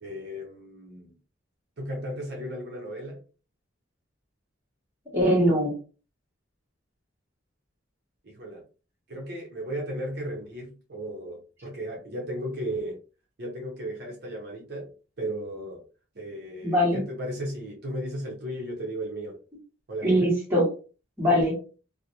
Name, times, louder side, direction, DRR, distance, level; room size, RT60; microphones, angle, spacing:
voice 1, 0.0-1.1 1.8-3.2 8.2-8.6 9.1-13.0 13.4-14.9 15.2-15.8 16.1-19.4 19.9-20.2, right 1 dB, 50° right, -1 dB, 0.7 m, -35 dB
voice 2, 5.1-5.7 16.6-17.0 20.0-20.7 21.2-21.6, equal, 10° right, -5 dB, 1.1 m, -22 dB
2.4 x 2.1 x 2.8 m, 0.36 s
head